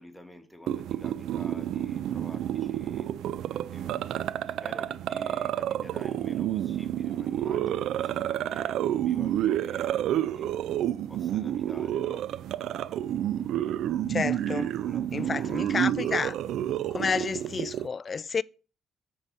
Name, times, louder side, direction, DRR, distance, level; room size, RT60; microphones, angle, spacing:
voice 1, 0.0-3.1 3.5-10.5 11.1-12.3 14.8-15.4, left 1 dB, ahead, 1.5 m, -49 dB
sound 1, 0.7-17.9, right 11 dB, 80° right, 0.3 m, -29 dB
voice 2, 14.1-14.8 15.1-16.4 16.9-18.4, left 5 dB, 40° left, 0.3 m, -30 dB
7.5 x 6.7 x 4.1 m
cardioid pair, 90°, 0 cm